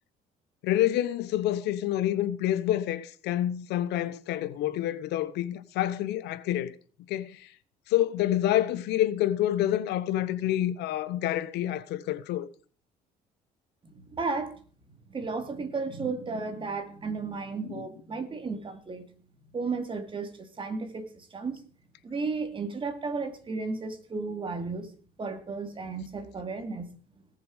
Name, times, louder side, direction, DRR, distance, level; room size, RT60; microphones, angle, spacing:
voice 1, 0.6-6.7 7.1-7.5 7.9-12.5 17.7-17.8, left 13 dB, 85° left, 0.9 m, -28 dB
voice 2, 13.8-14.6 14.9-19.1 19.5-21.7 22.0-24.9 25.2-26.9, right 4 dB, 30° right, 2.5 m, -34 dB
18.5 x 6.8 x 4.9 m
cardioid pair, 110°, 17 cm